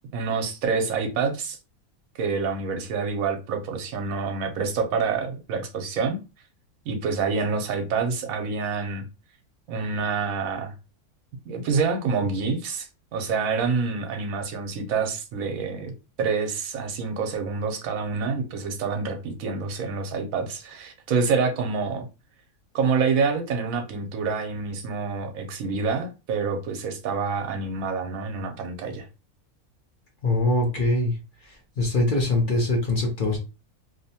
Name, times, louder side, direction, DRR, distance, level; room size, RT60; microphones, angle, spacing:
voice 1, 0.1-1.6 2.1-6.2 6.9-9.0 9.7-10.7 11.5-15.9 16.2-22.1 22.7-29.1, right 5 dB, 75° right, 1.0 m, -27 dB
voice 2, 30.2-31.1 31.8-33.4, left 2 dB, 55° left, 0.6 m, -22 dB
2.8 x 2.1 x 2.7 m
omnidirectional pair, 1.5 m